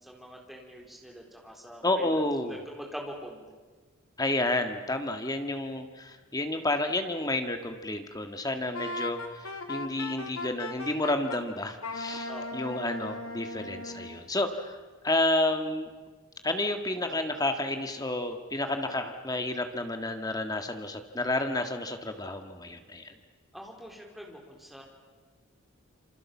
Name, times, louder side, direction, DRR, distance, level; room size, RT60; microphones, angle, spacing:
voice 1, 0.0-3.5 12.3-12.4 23.5-24.8, equal, ahead, 0 dB, 4.1 m, -44 dB
voice 2, 1.8-2.6 4.2-14.8 15.0-15.9 16.4-23.1, left 2 dB, 15° left, 6 dB, 1.7 m, -30 dB
Wind instrument woodwind instrument, 8.7-11.4 11.8-14.2, left 2 dB, 80° left, 2.8 m, -37 dB
27.5 x 26.0 x 7.3 m, 1.4 s
head